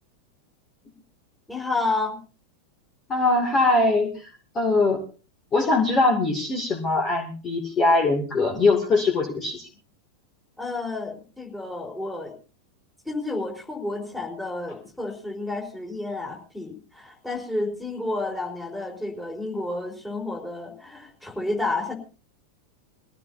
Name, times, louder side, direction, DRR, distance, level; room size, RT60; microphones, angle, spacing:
voice 1, 1.5-2.2 10.6-12.3 13.0-21.9, left 2 dB, 5° left, 4 dB, 4.3 m, -30 dB
voice 2, 3.1-4.1 4.5-5.0 5.5-9.7, left 3 dB, 25° left, 2 dB, 2.5 m, -21 dB
23.0 x 16.0 x 2.7 m, 0.35 s
figure-of-eight pair, 90°, 0 cm